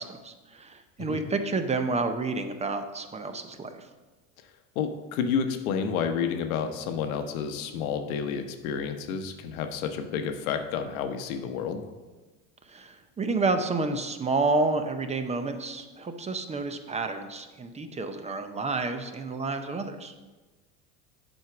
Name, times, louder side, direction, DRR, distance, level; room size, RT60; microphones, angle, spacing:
voice 1, 0.0-3.9 12.7-20.1, right 3 dB, 15° right, 8 dB, 0.6 m, -30 dB
voice 2, 4.8-11.8, left 6 dB, 85° left, 7 dB, 1.0 m, -30 dB
7.8 x 4.5 x 5.8 m, 1.2 s
supercardioid pair, 115°, 41 cm